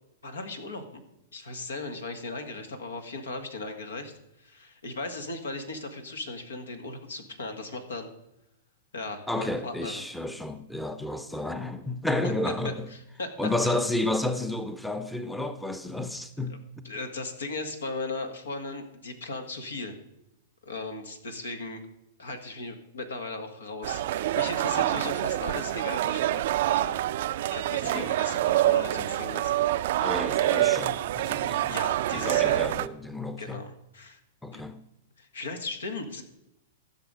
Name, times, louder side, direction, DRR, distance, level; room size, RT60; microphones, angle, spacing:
voice 1, 0.2-1.0 1.3-8.1 8.9-10.1 12.2-12.3 12.9-13.4 13.6-13.7 16.8-20.0 20.6-21.8 22.2-27.0 27.2-29.5 31.5-32.7 33.4-34.2 34.5-34.6 35.2-36.2, left 3 dB, 80° left, 1.7 m, -37 dB
voice 2, 9.3-12.9 13.4-16.9 27.8-28.1 30.0-31.7 32.1-33.6 34.4-34.8, left 1 dB, 5° left, 0.7 m, -31 dB
sound 1, 23.8-32.9, right 13 dB, 60° right, 0.4 m, -26 dB
15.0 x 6.0 x 5.1 m
hypercardioid pair, 110°, 0 cm